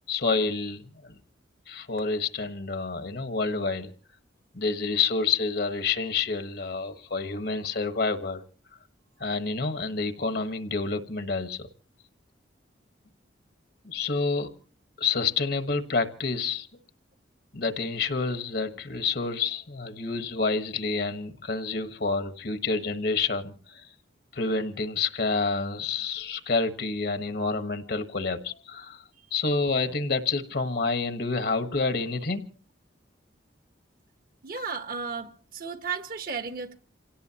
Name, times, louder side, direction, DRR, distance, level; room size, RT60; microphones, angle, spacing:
voice 1, 0.1-1.2 1.7-3.9 4.5-8.4 9.2-11.7 13.8-14.5 15.0-16.7 17.5-23.9 24.3-29.0 29.3-32.5, left 4 dB, 55° left, 1.3 m, -28 dB
voice 2, 34.4-36.8, right 5 dB, 50° right, 1.2 m, -34 dB
28.0 x 17.5 x 2.9 m
head